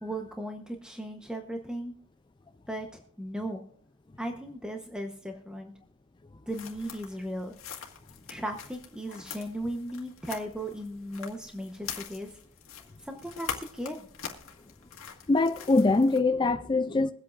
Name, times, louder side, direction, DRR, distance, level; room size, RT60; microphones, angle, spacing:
voice 1, 0.0-1.9 2.7-3.6 4.2-5.7 6.5-7.6 8.3-12.4 13.0-14.1, right 1 dB, 5° right, 0.9 m, -37 dB
sound 1, 6.5-16.2, left 7 dB, 75° left, 1.8 m, -44 dB
voice 2, 15.3-17.1, left 3 dB, 20° left, 0.4 m, -23 dB
23.0 x 8.2 x 2.5 m
head